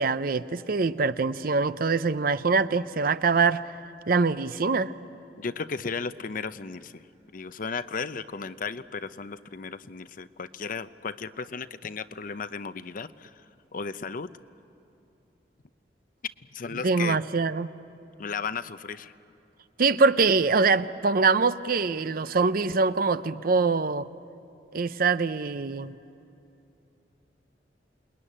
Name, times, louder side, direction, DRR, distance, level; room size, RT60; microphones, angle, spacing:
voice 1, 0.0-3.8 4.1-4.9 16.8-17.7 19.8-24.1 24.7-26.0, right 4 dB, 55° right, 13 dB, 0.6 m, -24 dB
voice 2, 5.4-7.0 7.3-13.3 13.7-14.3 16.5-17.2 18.2-19.1, left 5 dB, 50° left, 13 dB, 0.7 m, -35 dB
28.0 x 21.0 x 10.0 m, 2.9 s
head